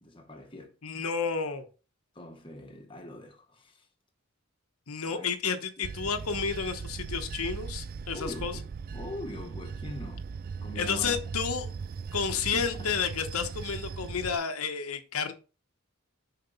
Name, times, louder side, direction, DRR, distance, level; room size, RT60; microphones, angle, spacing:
voice 1, 0.0-0.7 2.1-3.9 5.1-5.3 6.0-6.1 8.1-8.7 8.9-10.3 10.6-11.2 12.3-12.9, left 1 dB, 25° left, 1.2 m, -42 dB
voice 2, 0.8-1.7 4.9-8.5 10.8-11.7 12.1-15.3, left 6 dB, 85° left, 1.0 m, -31 dB
Bell / Train, 5.8-14.4, right 5 dB, 40° right, 0.3 m, -38 dB
6.7 x 5.2 x 4.0 m
head